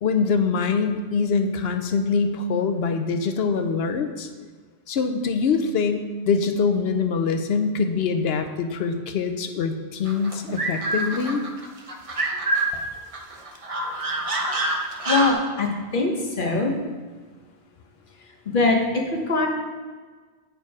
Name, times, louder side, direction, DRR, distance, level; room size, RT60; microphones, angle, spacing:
voice 1, 0.0-4.3 4.9-11.4, left 5 dB, 70° left, 7 dB, 0.8 m, -24 dB
sound 1, 10.0-12.8 13.1-15.3, right 2 dB, 35° right, 0.8 m, -26 dB
voice 2, 15.1-16.1 16.4-16.7 18.5-19.5, left 3 dB, 50° left, 1 dB, 1.2 m, -22 dB
9.1 x 4.5 x 4.7 m, 1.4 s
omnidirectional pair, 1.2 m